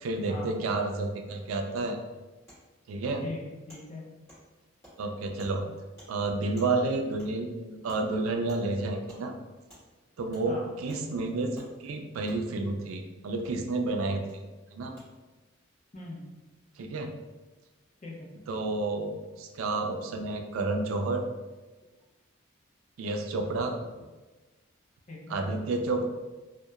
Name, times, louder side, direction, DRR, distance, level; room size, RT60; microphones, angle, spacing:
voice 1, 0.0-2.0 2.9-3.2 5.0-5.7 6.1-9.3 10.2-11.6 11.8-14.2 14.7-14.9 16.8-17.1 18.5-19.1 19.4-21.2 23.0-23.8 25.3-26.1, right 3 dB, 80° right, 4 dB, 0.3 m, -30 dB
Wood, 1.8-1.9 2.5-2.6 3.1-3.2 3.7-3.8 4.3-4.4 4.8-4.9 5.4-5.5 6.0-6.1 6.6-6.7 7.2-7.3 7.9-8.0 8.5-8.6 9.1-9.2 9.7-9.8 10.3-10.5 10.9-11.0 11.5-11.7 12.3-12.4 13.4-13.5 14.3-14.4 15.0-15.1, equal, 15° left, 1.3 m, -52 dB
voice 2, 3.2-4.0 10.5-10.7 15.9-16.2 18.0-18.3 25.1-25.5, left 2 dB, 35° left, -4 dB, 0.5 m, -41 dB
2.8 x 2.0 x 2.3 m, 1.2 s
head